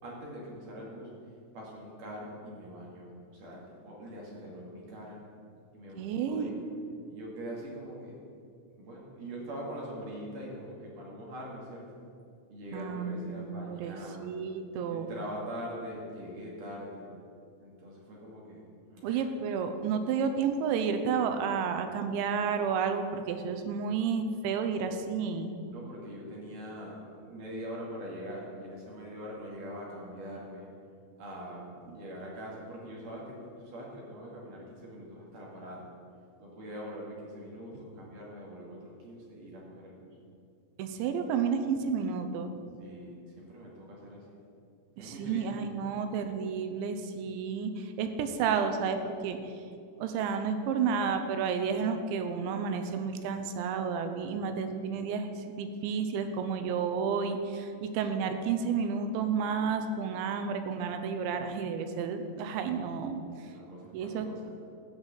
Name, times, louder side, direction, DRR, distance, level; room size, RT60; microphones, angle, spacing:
voice 1, 0.0-1.1 1.5-5.2 5.7-6.6 7.1-8.2 8.7-11.9 12.5-14.3 14.9-17.1 17.6-18.6 18.9-19.3 25.7-30.7 31.2-35.9 36.4-40.1 42.8-44.4 45.0-45.5 63.4-64.5, equal, 55° right, -3 dB, 3.4 m, -43 dB
voice 2, 6.0-6.5 12.7-15.1 19.0-25.5 31.9-32.0 40.8-42.5 45.0-49.5 50.0-63.5 63.9-64.3, right 6 dB, 85° right, 7 dB, 3.0 m, -31 dB
13.0 x 5.7 x 8.2 m, 2.4 s
omnidirectional pair, 5.2 m